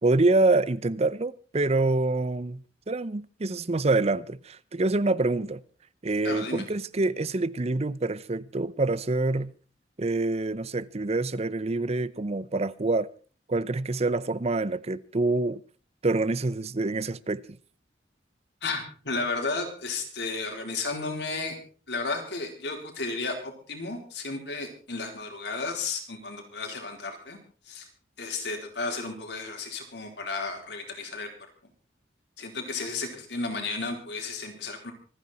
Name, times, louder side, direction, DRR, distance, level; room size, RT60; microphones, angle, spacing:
voice 1, 0.0-2.6 2.9-5.6 6.0-9.5 10.0-13.1 13.5-15.6 16.0-17.4, right 2 dB, 35° right, 0.6 m, -26 dB
voice 2, 6.2-6.6 18.6-21.6 21.9-27.4 27.7-27.9 28.2-31.3 32.4-34.9, left 3 dB, 65° left, 4.2 m, -33 dB
25.5 x 9.5 x 4.3 m
head